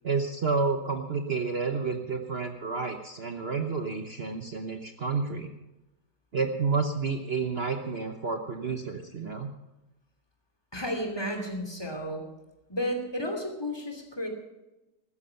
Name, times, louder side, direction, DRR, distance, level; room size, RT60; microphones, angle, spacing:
voice 1, 0.0-5.5 6.3-9.5, right 4 dB, 40° right, 5 dB, 1.0 m, -30 dB
voice 2, 10.7-12.2 12.7-14.3, equal, 15° left, 3 dB, 2.8 m, -32 dB
15.0 x 13.0 x 5.7 m, 0.98 s
omnidirectional pair, 1.9 m